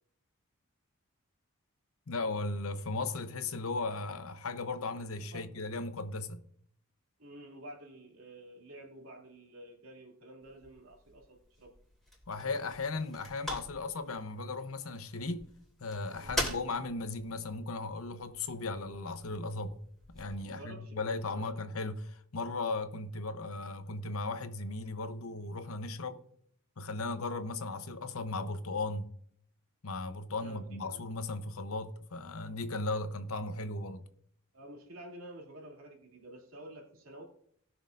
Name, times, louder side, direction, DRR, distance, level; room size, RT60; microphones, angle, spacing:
voice 1, 2.1-6.4 12.3-15.4 15.8-19.8 20.1-26.2 26.8-29.1 29.8-34.0, left 3 dB, 80° left, 0.9 m, -36 dB
voice 2, 7.2-11.7 16.2-16.5 20.4-21.5 30.4-31.0 34.5-37.2, right 1 dB, 75° right, 2.6 m, -50 dB
sound 1, 10.4-20.4, equal, ahead, 2.8 m, -44 dB
19.0 x 6.3 x 2.6 m
head